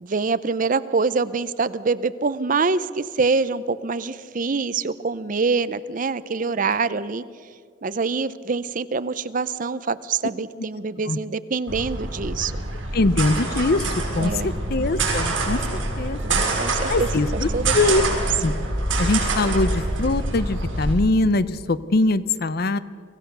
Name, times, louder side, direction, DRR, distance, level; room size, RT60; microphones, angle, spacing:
voice 1, 0.0-7.2 7.8-12.5 14.2-14.5 16.4-17.1 17.5-17.7 18.1-18.2, right 4 dB, 45° right, 15 dB, 0.6 m, -25 dB
sound 1, 11.7-20.9, right 2 dB, 75° right, 6.2 m, -25 dB
voice 2, 12.9-13.9 14.1-15.6 16.0-16.4 16.9-18.0 18.4-18.5 19.0-22.8, left 2 dB, 50° left, 16 dB, 0.6 m, -22 dB
24.0 x 16.0 x 6.8 m, 2.1 s
head